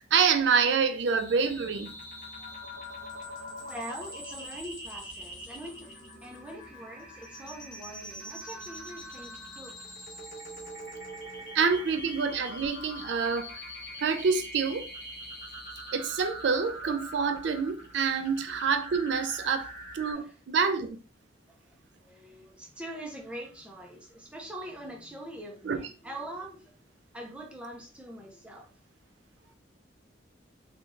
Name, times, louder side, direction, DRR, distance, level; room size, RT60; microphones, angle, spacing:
voice 1, 0.0-1.9 11.5-13.5 14.0-14.9 15.9-19.7 19.9-21.0 25.6-25.8, right 5 dB, 65° right, 0.4 m, -27 dB
sound 1, 1.0-20.1, equal, 45° left, 1.3 m, -43 dB
voice 2, 3.6-9.7 11.3-11.5 11.9-12.0 13.9-14.0 18.2-18.4 20.1-20.3 21.5-26.8 27.1-28.7, right 1 dB, 5° right, 0.5 m, -43 dB
3.6 x 2.3 x 2.5 m
head